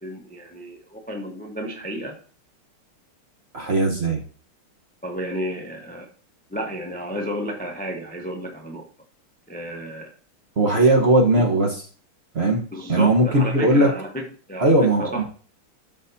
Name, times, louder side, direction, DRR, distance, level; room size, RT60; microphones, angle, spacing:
voice 1, 0.0-2.2 5.0-6.1 6.5-8.9 9.5-10.1 12.7-14.2 14.5-15.2, equal, 10° left, 1 dB, 0.4 m, -32 dB
voice 2, 3.5-4.2 10.6-11.8 12.3-13.9 14.6-15.2, right 2 dB, 35° right, 0 dB, 1.1 m, -19 dB
12.5 x 6.2 x 2.8 m, 0.41 s
omnidirectional pair, 2.4 m